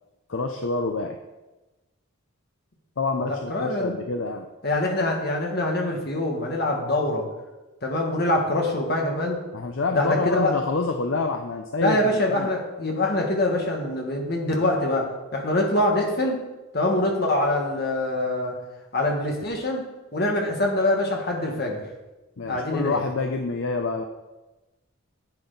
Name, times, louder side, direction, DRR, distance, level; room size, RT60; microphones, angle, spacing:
voice 1, 0.3-1.2 3.0-4.5 9.5-12.5 22.4-24.0, left 3 dB, 65° left, 5 dB, 0.6 m, -27 dB
voice 2, 3.3-3.9 4.6-7.3 7.8-9.4 9.9-10.6 11.8-16.4 16.7-18.5 18.9-19.8 20.1-21.8 22.5-23.0, left 1 dB, 45° left, 1 dB, 1.7 m, -24 dB
10.5 x 7.7 x 4.0 m, 1.1 s
head